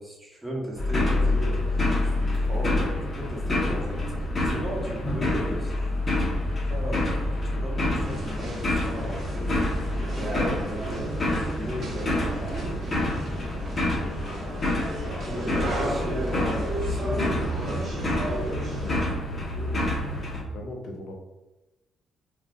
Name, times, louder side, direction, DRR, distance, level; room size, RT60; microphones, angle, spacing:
voice 1, 0.0-5.8 6.7-7.3 7.5-9.7 10.0-12.8 15.3-18.3, equal, 10° right, -3 dB, 1.1 m, -36 dB
sound 1, 0.8-20.4, left 1 dB, 35° left, 0.9 m, -27 dB
sound 2, 8.0-19.1, right 1 dB, 50° right, 0.9 m, -34 dB
voice 2, 13.9-15.4 15.7-16.1 18.7-21.1, left 1 dB, 75° left, 1 dB, 0.7 m, -42 dB
2.4 x 2.3 x 3.7 m, 1.0 s
cardioid pair, 90°, 0 cm